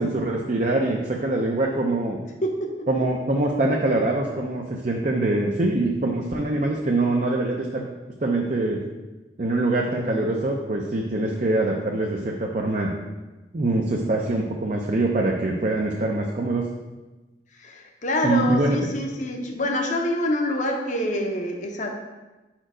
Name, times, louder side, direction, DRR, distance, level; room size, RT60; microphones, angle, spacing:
voice 1, 0.0-2.2 2.9-7.8 8.2-8.8 9.4-12.9 13.5-16.7 18.2-18.8, right 2 dB, 40° right, 0 dB, 0.5 m, -24 dB
voice 2, 2.4-2.9 17.6-21.9, left 1 dB, 40° left, 3 dB, 0.8 m, -26 dB
5.0 x 4.5 x 5.0 m, 1.1 s
head